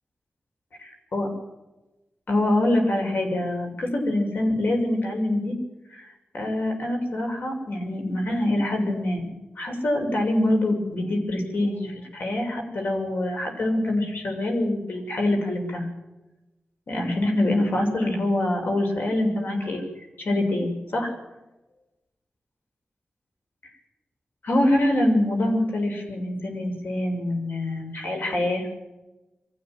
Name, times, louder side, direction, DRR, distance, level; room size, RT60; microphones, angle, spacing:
voice 1, 0.8-1.3 2.3-5.6 5.9-6.1 6.3-9.3 9.6-15.9 16.9-19.8 20.2-21.1 24.4-28.7, left 1 dB, 75° left, 2 dB, 7.0 m, -25 dB
24.0 x 15.0 x 9.3 m, 1.0 s
wide cardioid pair, 95°, 3 cm